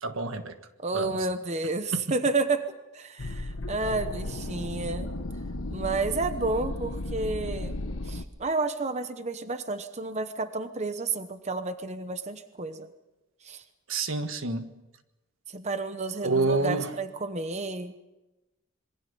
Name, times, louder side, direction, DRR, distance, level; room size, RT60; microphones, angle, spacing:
voice 1, 0.0-0.5 0.9-1.1 1.9-2.0 13.9-14.7 16.2-16.9, right 3 dB, 75° right, 8 dB, 1.5 m, -28 dB
voice 2, 0.8-2.6 2.9-5.1 5.7-7.8 8.1-12.9 13.4-13.6 15.5-17.9, right 3 dB, 35° right, 9 dB, 1.0 m, -31 dB
sound 1, 3.2-8.2, left 1 dB, 80° left, 1.2 m, -34 dB
27.0 x 23.0 x 5.5 m, 1.0 s
head